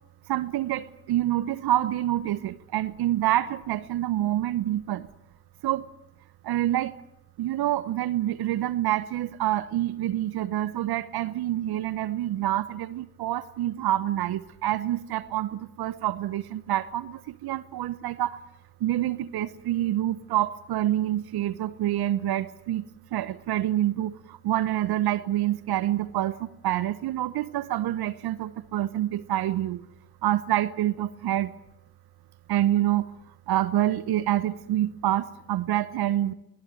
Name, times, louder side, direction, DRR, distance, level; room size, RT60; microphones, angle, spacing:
voice 1, 0.3-5.1 5.6-5.9 6.4-7.0 7.4-18.4 18.8-22.8 23.1-29.8 30.2-31.5 32.5-33.1 33.5-36.3, right 13 dB, 60° right, 16 dB, 1.1 m, -27 dB
22.0 x 19.5 x 9.2 m, 0.81 s
hypercardioid pair, 50°, 42 cm